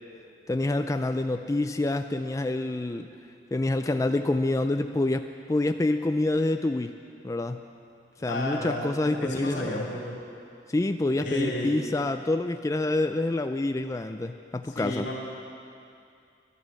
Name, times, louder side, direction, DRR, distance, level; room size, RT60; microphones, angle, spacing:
voice 1, 0.5-3.1 3.5-6.9 7.2-7.7 8.2-9.8 10.7-15.1, left 2 dB, 20° left, 7 dB, 0.4 m, -27 dB
voice 2, 8.2-10.2 11.2-11.8 14.7-15.2, left 1 dB, 85° left, -2 dB, 3.3 m, -32 dB
12.5 x 12.0 x 7.5 m, 2.5 s
head